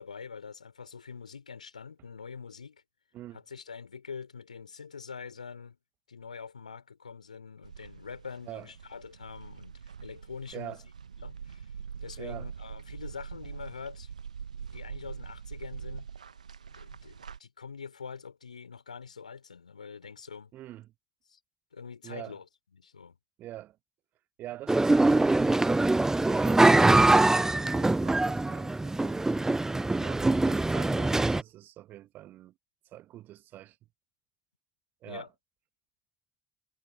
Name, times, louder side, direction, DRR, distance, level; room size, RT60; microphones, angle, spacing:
voice 1, 0.0-2.8 3.3-5.8 6.1-10.8 11.2-11.7 12.0-14.1 14.7-16.1 16.7-20.5 21.3-21.4 21.7-22.4 22.7-23.2 35.0-35.3, left 6 dB, 85° left, 3.8 m, -44 dB
sound 1, 7.6-17.4, right 6 dB, 80° right, 1.5 m, -43 dB
voice 2, 10.5-10.8 12.2-12.5 20.5-20.9 22.0-22.4 23.4-23.8 24.4-26.0 26.3-29.3 29.9-32.5 32.9-33.8 35.0-35.3, right 14 dB, 55° right, 1.8 m, -44 dB
sound 2, 24.7-31.4, right 2 dB, 15° right, 0.5 m, -23 dB
figure-of-eight pair, 50°, 4 cm